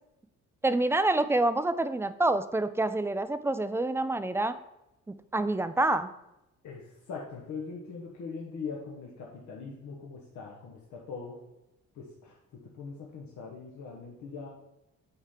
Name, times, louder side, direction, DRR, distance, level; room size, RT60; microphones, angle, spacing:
voice 1, 0.6-4.6 5.1-6.1, right 2 dB, 10° right, 12 dB, 0.3 m, -27 dB
voice 2, 6.6-11.4 11.9-14.5, left 5 dB, 70° left, -2 dB, 1.1 m, -41 dB
8.2 x 4.3 x 3.6 m, 0.90 s
cardioid pair, 90°, 30 cm